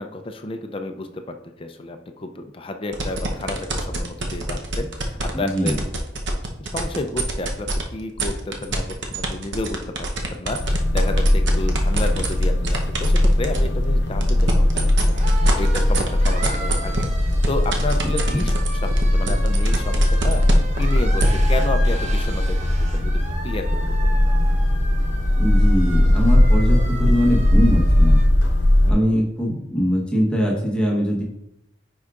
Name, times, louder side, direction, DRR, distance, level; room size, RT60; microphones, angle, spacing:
voice 1, 0.0-5.8 6.7-14.9 15.2-20.4 20.8-22.7 22.9-24.2 28.8-29.1, left 2 dB, 30° left, 6 dB, 0.4 m, -31 dB
sound 1, 2.9-7.8 8.2-13.7 14.1-21.3, right 3 dB, 65° right, 0.9 m, -26 dB
voice 2, 5.3-5.8 18.3-18.4 25.4-28.2 28.9-31.2, equal, 5° left, -4 dB, 1.1 m, -22 dB
sound 2, 10.6-28.9, left 1 dB, 65° left, 0.8 m, -19 dB
sound 3, 12.2-28.3, right 2 dB, 40° right, 0.8 m, -37 dB
9.6 x 4.7 x 2.5 m, 0.83 s
head